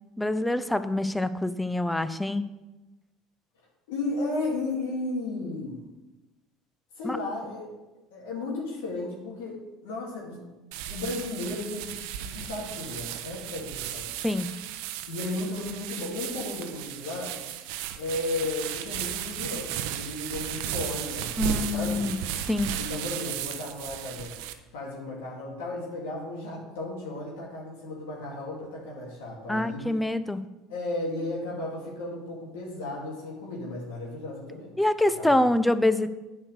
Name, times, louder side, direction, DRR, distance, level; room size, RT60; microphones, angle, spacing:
voice 1, 0.2-2.5 7.0-7.2 14.2-14.5 21.4-22.2 22.5-22.7 29.5-30.4 34.8-36.1, left 1 dB, 5° left, 13 dB, 0.6 m, -25 dB
voice 2, 3.9-5.9 7.0-7.8 8.1-10.4 10.9-14.1 15.1-17.4 17.9-22.1 22.8-24.4 24.7-29.9 30.7-34.8 35.2-35.3, left 2 dB, 80° left, -3 dB, 2.2 m, -34 dB
sound 1, 10.7-24.5, right 10 dB, 70° right, 0.7 m, -35 dB
8.7 x 4.7 x 6.6 m, 1.1 s
hypercardioid pair, 75°, 0 cm